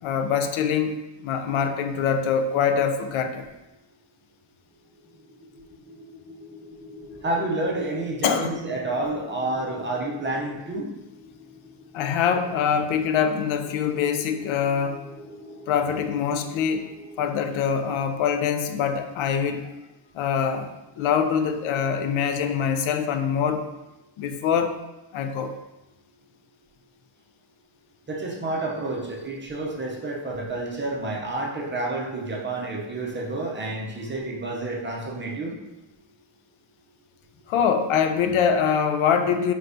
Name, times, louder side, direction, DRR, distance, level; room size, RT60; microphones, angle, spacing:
voice 1, 0.0-1.0 1.2-3.5 8.2-8.6 11.9-15.0 15.7-16.9 17.2-19.7 20.1-20.7 21.0-23.7 24.2-24.8 25.1-25.6 37.5-39.5, left 7 dB, 80° left, 7 dB, 0.5 m, -24 dB
sound 1, 4.8-19.9, left 2 dB, ahead, 1.2 m, -46 dB
voice 2, 7.2-10.9 28.1-35.6, right 2 dB, 25° right, -2 dB, 0.5 m, -29 dB
4.5 x 3.4 x 2.6 m, 1.0 s
cardioid pair, 170°, 48 cm